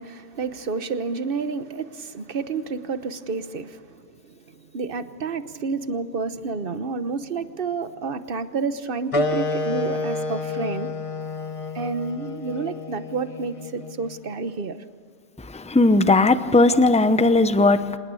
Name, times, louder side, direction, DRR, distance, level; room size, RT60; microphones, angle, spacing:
voice 1, 0.0-10.9 11.7-14.8, right 4 dB, 55° right, 1.3 m, -30 dB
sound 1, 9.1-14.2, left 2 dB, 30° left, 0.9 m, -29 dB
voice 2, 15.4-18.0, left 2 dB, 5° left, 0.7 m, -18 dB
26.0 x 20.5 x 8.4 m
omnidirectional pair, 1.1 m